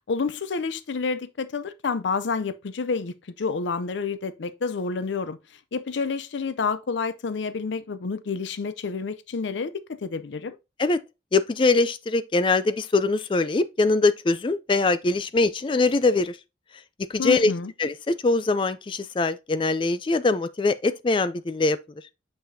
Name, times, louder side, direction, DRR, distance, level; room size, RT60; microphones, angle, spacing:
voice 1, 0.1-5.4 5.7-10.6 17.2-17.7, left 4 dB, 90° left, 0.5 m, -29 dB
voice 2, 11.3-16.4 17.1-17.5 17.8-21.8, left 3 dB, 30° left, 0.3 m, -22 dB
6.8 x 5.7 x 2.7 m
head